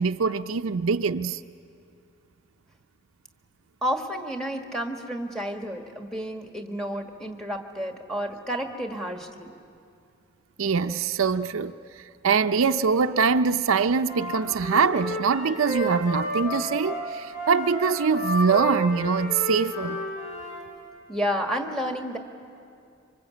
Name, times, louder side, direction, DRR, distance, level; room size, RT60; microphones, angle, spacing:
voice 1, 0.0-1.4 10.6-11.7 12.2-20.0, right 5 dB, 75° right, 0.6 m, -23 dB
voice 2, 3.8-9.5 21.1-22.2, equal, ahead, 1.6 m, -31 dB
Wind instrument woodwind instrument, 14.0-20.6, right 1 dB, 60° left, 5.9 m, -32 dB
26.5 x 25.0 x 8.5 m
head